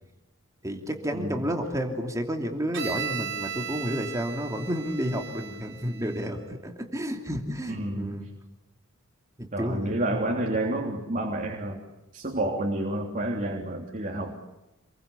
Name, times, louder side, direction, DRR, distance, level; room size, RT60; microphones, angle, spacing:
voice 1, 0.6-8.3 9.4-10.2 14.1-14.4, equal, 15° right, 3 dB, 2.9 m, -31 dB
Bowed string instrument, 2.7-6.5, right 8 dB, 65° right, 4.7 m, -36 dB
voice 2, 7.7-8.2 9.5-11.8 12.1-14.4, right 1 dB, 40° right, 0 dB, 3.4 m, -29 dB
28.5 x 22.5 x 8.5 m, 0.99 s
head